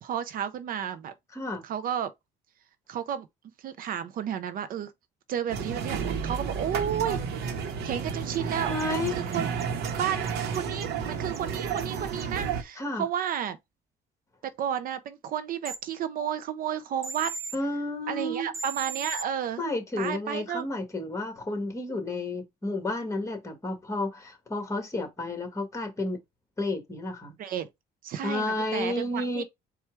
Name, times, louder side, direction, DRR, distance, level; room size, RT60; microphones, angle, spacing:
voice 1, 0.0-1.1 1.6-2.1 2.9-3.3 3.6-4.9 5.3-8.8 9.2-9.5 10.0-13.6 14.6-17.3 18.1-19.6 20.0-20.7 27.4-27.7 28.0-29.4, right 9 dB, 55° right, 0.5 m, -32 dB
voice 2, 1.3-1.6 8.7-9.2 12.8-13.0 17.5-18.5 19.6-26.2 26.6-27.4 28.2-29.4, left 2 dB, 20° left, 1.7 m, -31 dB
sound 1, 5.5-12.6, right 6 dB, 85° right, 0.9 m, -31 dB
sound 2, 8.3-8.4 8.8-9.9 10.3-10.9 11.3-11.4 11.8-11.9 12.2-12.3 15.6-15.8 17.0-17.6 18.5-19.2, right 4 dB, 15° right, 0.8 m, -37 dB
4.3 x 2.3 x 4.6 m
cardioid pair, 110°, 17 cm